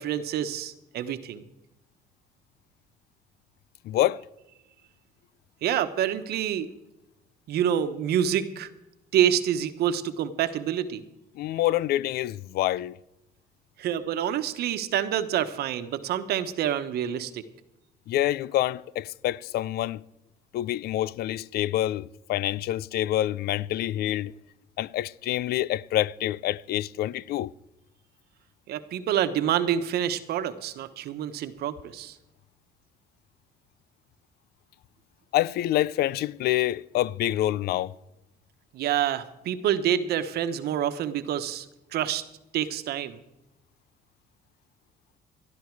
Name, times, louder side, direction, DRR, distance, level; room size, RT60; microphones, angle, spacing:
voice 1, 0.0-1.4 5.6-6.7 7.5-8.7 9.1-11.0 13.8-17.4 28.7-32.2 38.7-42.2 42.5-43.2, right 10 dB, 70° right, 1.2 m, -27 dB
voice 2, 3.9-4.2 11.4-12.9 18.1-20.0 20.5-24.3 24.8-27.5 35.3-37.9, left 14 dB, 70° left, 0.5 m, -27 dB
13.0 x 13.0 x 4.7 m
cardioid pair, 110°, 17 cm